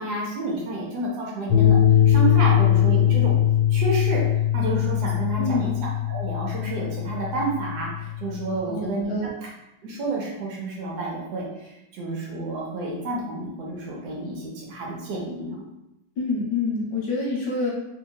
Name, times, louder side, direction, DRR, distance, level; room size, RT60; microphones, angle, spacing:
voice 1, 0.0-1.8 2.1-3.4 3.7-4.2 4.5-5.7 6.1-9.1 9.4-9.5 9.8-15.6, right 2 dB, 70° right, -3 dB, 1.2 m, -30 dB
sound 1, 1.5-8.6, left 11 dB, 45° left, 0.6 m, -21 dB
voice 2, 5.4-5.7 8.7-9.3 16.2-17.7, left 3 dB, 70° left, -4 dB, 1.0 m, -27 dB
3.0 x 2.8 x 2.3 m, 0.88 s
omnidirectional pair, 1.9 m